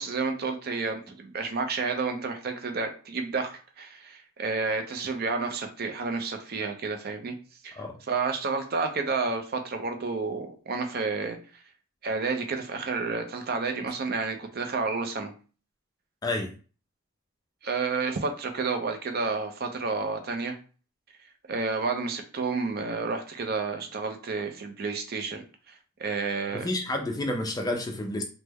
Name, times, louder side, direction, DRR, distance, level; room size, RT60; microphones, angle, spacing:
voice 1, 0.0-7.3 7.6-7.8 8.1-11.4 12.0-15.3 17.6-20.5 21.5-26.7, right 4 dB, 45° right, 0.5 m, -30 dB
voice 2, 16.2-16.5 26.5-28.2, left 1 dB, 15° left, 0.4 m, -30 dB
3.2 x 2.1 x 3.4 m
head